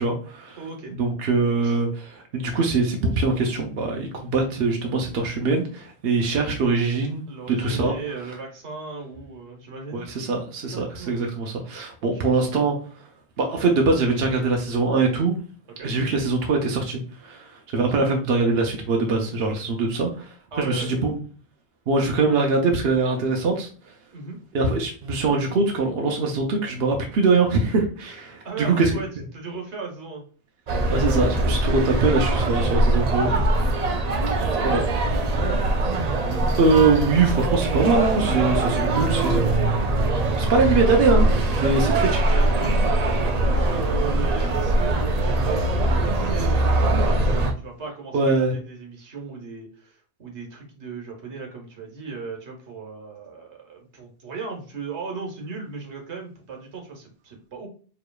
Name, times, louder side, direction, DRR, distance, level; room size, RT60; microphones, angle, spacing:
voice 1, 0.0-0.6 1.0-7.9 9.9-12.8 13.4-15.3 15.8-20.3 20.6-21.2 21.9-23.7 24.5-28.9 30.9-33.4 34.6-34.8 36.6-39.6 40.4-42.3 48.1-48.6, right 3 dB, 65° right, 2 dB, 0.9 m, -22 dB
voice 2, 0.6-0.9 1.6-1.8 7.3-10.1 10.7-11.2 12.0-12.3 15.8-15.9 20.5-20.9 24.1-24.4 28.4-29.1 29.3-30.2 31.7-32.4 34.2-34.8 41.8-43.1 43.5-47.2 47.6-57.7, right 4 dB, 85° right, 1 dB, 1.4 m, -36 dB
sound 1, 30.7-47.5, right 2 dB, 45° right, 0.6 m, -22 dB
4.8 x 3.0 x 2.3 m, 0.41 s
omnidirectional pair, 1.1 m